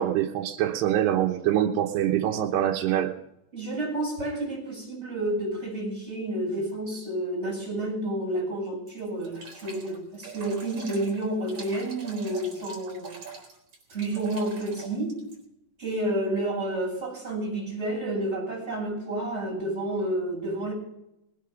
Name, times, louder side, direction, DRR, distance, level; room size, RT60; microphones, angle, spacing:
voice 1, 0.0-3.1, right 11 dB, 85° right, 3.1 m, -24 dB
voice 2, 3.5-13.2 13.9-15.2 15.8-20.7, right 1 dB, 15° right, 7.9 m, -30 dB
sound 1, 8.9-15.4, right 5 dB, 40° right, 4.8 m, -43 dB
20.5 x 9.1 x 5.7 m
omnidirectional pair, 4.7 m